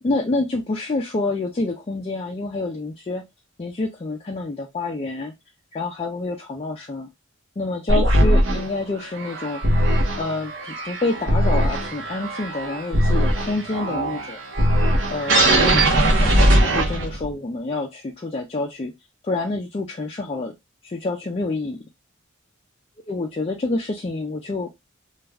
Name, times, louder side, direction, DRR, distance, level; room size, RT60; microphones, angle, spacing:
voice 1, 0.0-3.2 3.6-5.3 5.7-7.1 7.6-9.6 10.2-10.5 10.8-14.4 15.1-18.9 19.2-20.5 20.8-21.8 23.1-24.7, left 2 dB, 25° left, 0 dB, 0.3 m, -27 dB
sound 1, 7.9-17.3, right 1 dB, 60° right, 0.7 m, -20 dB
2.3 x 2.1 x 3.3 m, 0.20 s
head